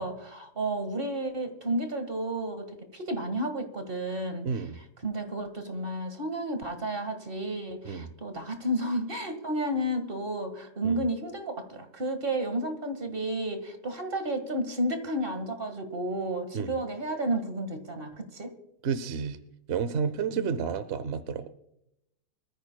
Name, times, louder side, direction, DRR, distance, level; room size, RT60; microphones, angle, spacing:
voice 1, 0.0-4.5 5.0-18.5 20.3-20.6, right 1 dB, 30° right, 7 dB, 1.9 m, -32 dB
voice 2, 4.4-4.8 7.8-8.1 10.8-11.0 16.5-16.7 18.8-19.4 19.7-21.5, right 6 dB, 60° right, 13 dB, 0.7 m, -31 dB
25.0 x 14.0 x 2.3 m, 0.81 s
omnidirectional pair, 1.9 m